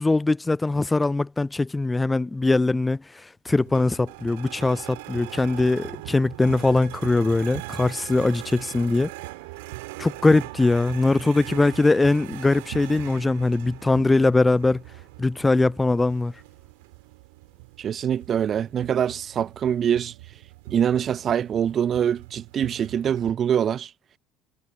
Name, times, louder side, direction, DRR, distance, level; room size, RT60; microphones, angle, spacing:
voice 1, 0.0-9.1 10.0-14.8 15.2-16.3, left 2 dB, 15° left, 0.3 m, -21 dB
sound 1, 3.5-23.3, right 24 dB, 70° right, 3.2 m, -41 dB
voice 2, 17.8-20.1 20.7-23.9, right 9 dB, 40° right, 0.7 m, -24 dB
figure-of-eight pair, 60°, 0 cm